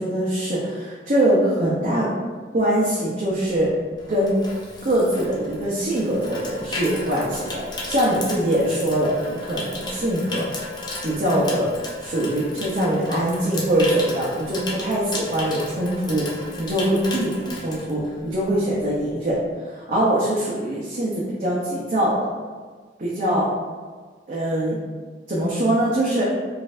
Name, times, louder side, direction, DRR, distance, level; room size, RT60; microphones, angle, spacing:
voice 1, 0.0-2.1 2.5-3.7 4.1-4.4 4.8-10.4 11.0-11.7 12.0-16.3 16.6-22.3 23.0-23.5 24.3-24.8 25.3-26.2, right 1 dB, 45° right, -7 dB, 0.6 m, -23 dB
Water tap faucet / Sink (filling or washing), 3.9-18.5 18.8-19.1, left 2 dB, 25° left, 0.4 m, -35 dB
4.0 x 2.6 x 2.4 m, 1.5 s
head